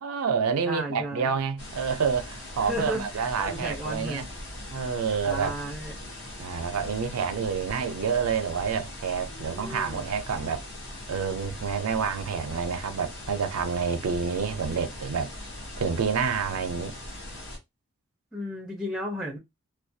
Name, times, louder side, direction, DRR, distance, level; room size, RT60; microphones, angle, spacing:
voice 1, 0.0-4.3 4.7-5.5 6.4-10.6 11.1-15.3 15.8-16.9, right 6 dB, 85° right, 0.4 m, -28 dB
voice 2, 0.7-1.4 2.6-4.2 5.3-5.9 9.3-10.1 18.3-19.4, equal, ahead, 0.5 m, -34 dB
sound 1, 1.6-17.6, left 1 dB, 55° left, 0.9 m, -40 dB
2.3 x 2.2 x 2.6 m
head